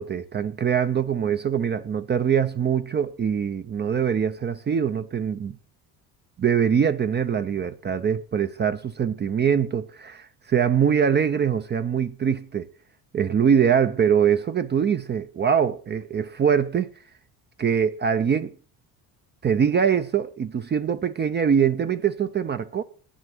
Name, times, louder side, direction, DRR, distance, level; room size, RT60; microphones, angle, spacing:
voice 1, 0.0-5.6 6.4-12.7 13.1-16.9 17.6-18.5 19.4-22.8, right 7 dB, 30° right, 0.5 m, -23 dB
9.1 x 6.3 x 7.1 m
cardioid pair, 120°, 38 cm